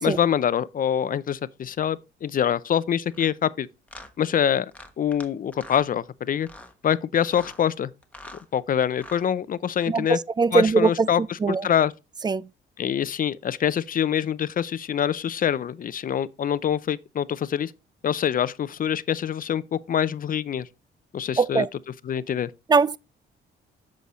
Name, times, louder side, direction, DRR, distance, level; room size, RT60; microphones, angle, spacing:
voice 1, 0.0-3.7 4.2-4.7 5.0-6.5 6.8-7.9 8.5-10.2 10.5-11.9 12.8-17.7 18.0-20.7 21.1-21.7 22.0-22.5, left 9 dB, 45° left, 0.5 m, -25 dB
sound 1, 3.1-3.3 3.9-4.1 4.7-5.3 5.5-5.9 6.4-6.7 7.2-7.6 8.0-8.4 8.9-9.3, left 1 dB, 5° left, 1.2 m, -44 dB
voice 2, 9.9-11.1 11.4-11.7 12.2-12.5 21.4-21.7 22.7-23.0, right 5 dB, 20° right, 0.3 m, -21 dB
8.0 x 6.4 x 3.1 m
cardioid pair, 90°, 20 cm